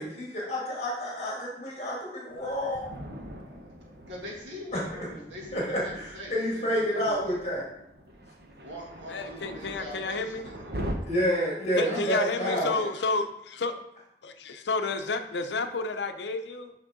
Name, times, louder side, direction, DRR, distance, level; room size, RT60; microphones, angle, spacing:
voice 1, 0.0-3.0 5.5-7.6 11.1-12.7, equal, 35° left, -4 dB, 2.0 m, -29 dB
Thunder, 2.3-10.9, equal, 60° right, 1.0 m, -42 dB
voice 2, 4.1-7.3 8.6-10.8 11.8-12.0 12.3-12.9, equal, 90° right, -3 dB, 2.2 m, -42 dB
voice 3, 9.1-10.4 11.8-13.7 14.2-16.7, left 3 dB, 80° left, 8 dB, 0.6 m, -31 dB
6.4 x 5.8 x 3.7 m, 0.79 s
head